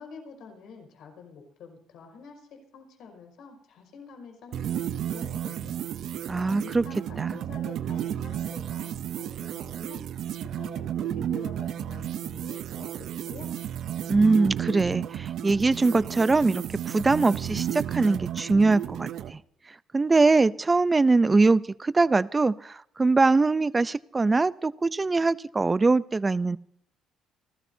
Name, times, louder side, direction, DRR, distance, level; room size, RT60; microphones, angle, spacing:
voice 1, 0.0-5.8 6.6-10.0 10.4-13.5, left 5 dB, 70° left, 3 dB, 5.3 m, -47 dB
sound 1, 4.5-19.3, right 10 dB, 70° right, 0.7 m, -33 dB
voice 2, 6.3-6.8 7.2-7.3 14.1-19.4 19.9-26.6, right 3 dB, 25° right, 18 dB, 0.6 m, -22 dB
27.5 x 14.0 x 2.8 m, 0.68 s
supercardioid pair, 80°, 0 cm